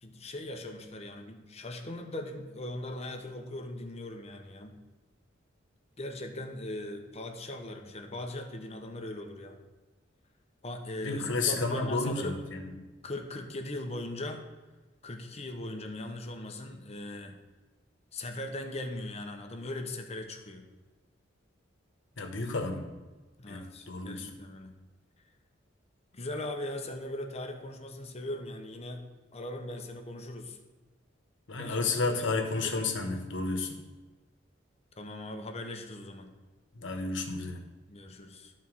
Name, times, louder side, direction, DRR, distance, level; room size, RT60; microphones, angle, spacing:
voice 1, 0.0-4.8 6.0-9.6 10.6-12.4 13.0-14.5 15.0-17.4 18.1-20.6 23.4-24.8 26.1-30.6 31.6-32.3 32.5-33.0 35.0-36.4 37.9-38.5, left 1 dB, 35° left, 5 dB, 0.9 m, -39 dB
voice 2, 11.0-12.6 22.2-22.8 23.5-24.3 31.5-33.8 36.8-37.6, left 3 dB, 75° left, 5 dB, 1.1 m, -31 dB
11.0 x 4.2 x 6.1 m, 1.2 s
head